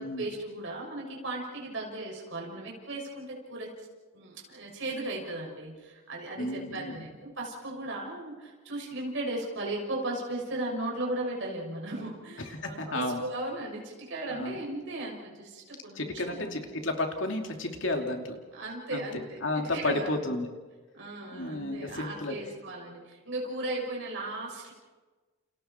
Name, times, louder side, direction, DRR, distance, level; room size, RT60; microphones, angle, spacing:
voice 1, 0.0-3.7 4.1-16.6 18.5-20.2 20.9-24.7, right 2 dB, 60° right, -2 dB, 6.5 m, -36 dB
voice 2, 6.4-7.0 12.4-13.2 14.3-14.6 15.9-18.4 18.9-19.1 19.4-20.5 21.3-22.4, left 2 dB, 65° left, 3 dB, 2.8 m, -32 dB
29.5 x 29.5 x 4.5 m, 1.3 s
head